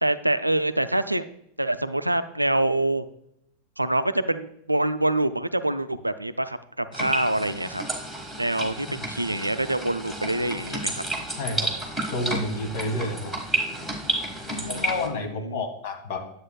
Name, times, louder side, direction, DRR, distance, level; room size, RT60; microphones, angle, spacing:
voice 1, 0.0-1.3 1.6-3.1 3.8-7.8 8.4-11.0 14.5-15.6, right 1 dB, 85° right, 13 dB, 0.3 m, -26 dB
sound 1, 6.9-15.1, right 1 dB, ahead, 1.5 m, -31 dB
voice 2, 11.4-11.7 12.1-13.3 14.7-16.2, left 2 dB, 50° left, 3 dB, 1.6 m, -30 dB
9.8 x 7.8 x 2.2 m, 0.75 s
figure-of-eight pair, 90°, 0 cm